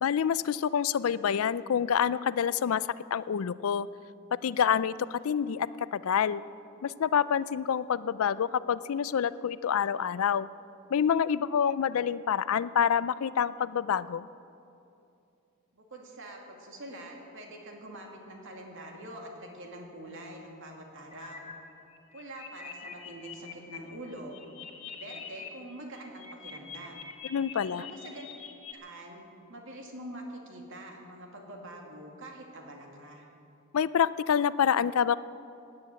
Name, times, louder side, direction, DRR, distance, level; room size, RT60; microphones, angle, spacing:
voice 1, 0.0-3.9 4.4-6.4 6.8-10.5 10.9-14.3 27.2-27.9 33.7-35.2, left 8 dB, 70° left, 17 dB, 0.4 m, -27 dB
voice 2, 15.7-21.5 22.1-24.4 24.9-27.1 27.7-28.3 28.7-29.2 29.5-33.3, right 1 dB, 60° right, 1 dB, 2.4 m, -45 dB
sound 1, 21.1-21.5 21.9-23.8 24.1-25.5 25.8-28.7, left 7 dB, 30° left, 1.5 m, -45 dB
16.5 x 9.8 x 8.5 m, 2.7 s
head